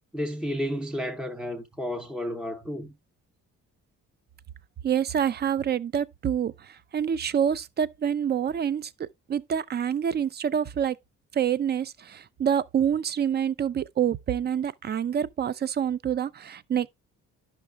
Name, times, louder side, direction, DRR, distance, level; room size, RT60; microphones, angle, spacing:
voice 1, 0.1-2.9, equal, 5° right, 0.7 m, -32 dB
voice 2, 4.8-11.0 11.3-16.9, right 8 dB, 35° right, 0.4 m, -27 dB
11.0 x 5.8 x 2.2 m
cardioid pair, 90°, 30 cm